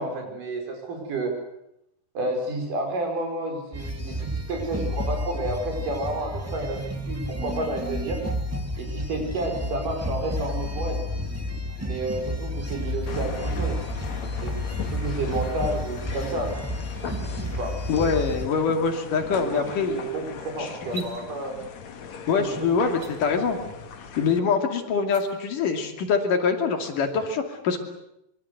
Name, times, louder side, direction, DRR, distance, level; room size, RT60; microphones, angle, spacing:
voice 1, 0.0-1.3 2.1-8.2 8.8-11.1 11.8-13.8 14.4-16.5 17.3-17.8 19.4-21.6 22.2-22.7, right 2 dB, 80° right, 3 dB, 6.7 m, -31 dB
sound 1, 3.7-18.5, left 1 dB, 5° right, 1.4 m, -31 dB
sound 2, 13.1-24.4, left 6 dB, 60° left, 3.0 m, -39 dB
voice 2, 17.9-20.0 20.6-21.0 22.3-23.6 24.2-27.8, left 5 dB, 80° left, 5 dB, 4.2 m, -24 dB
sound 3, 20.8-21.1 22.9-23.1 25.0-25.2, right 6 dB, 50° right, 3.9 m, -40 dB
25.0 x 24.0 x 8.1 m, 0.81 s
omnidirectional pair, 3.7 m